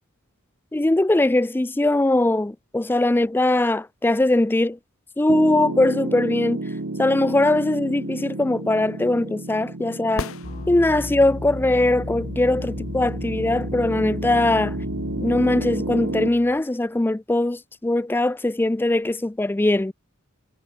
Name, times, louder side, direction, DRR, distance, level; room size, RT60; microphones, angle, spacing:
voice 1, 0.7-4.8 5.2-6.6 7.0-10.3 10.7-14.8 15.2-19.9, left 2 dB, 10° left, 0.3 m, -21 dB
Piano, 5.3-16.3, right 2 dB, 70° right, 1.3 m, -32 dB
sound 1, 10.1-11.3 15.2-15.3, left 4 dB, 90° left, 1.0 m, -33 dB
sound 2, 10.4-16.6, left 2 dB, 40° left, 0.7 m, -34 dB
head